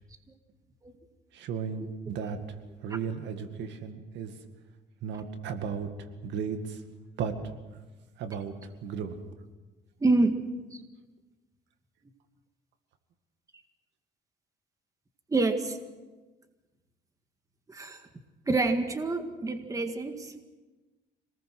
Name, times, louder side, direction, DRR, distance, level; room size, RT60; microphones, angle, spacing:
voice 1, 1.3-2.4 2.8-4.3 5.0-5.9 6.2-6.8 7.2-7.4 7.7-7.8 8.2-8.5 8.8-9.2, right 7 dB, 75° right, 7 dB, 2.1 m, -34 dB
voice 2, 10.0-10.4 10.7-10.8 15.3-15.8 17.7-18.0 18.5-20.4, right 3 dB, 20° right, 6 dB, 1.8 m, -27 dB
26.0 x 19.5 x 6.2 m, 1.2 s
cardioid pair, 120°, 18 cm